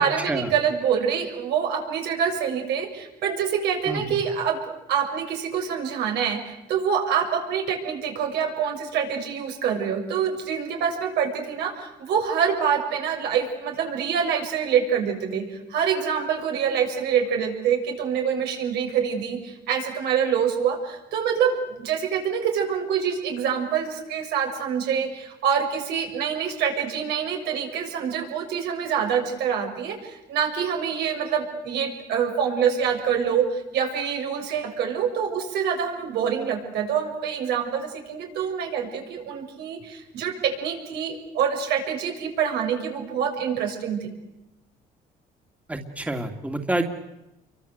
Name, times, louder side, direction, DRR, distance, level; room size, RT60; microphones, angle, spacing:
voice 1, 0.0-44.1, right 7 dB, 80° right, 3 dB, 6.9 m, -26 dB
voice 2, 45.7-46.8, right 1 dB, 10° right, 5 dB, 2.5 m, -28 dB
29.0 x 24.0 x 8.2 m, 0.92 s
cardioid pair, 110°, 17 cm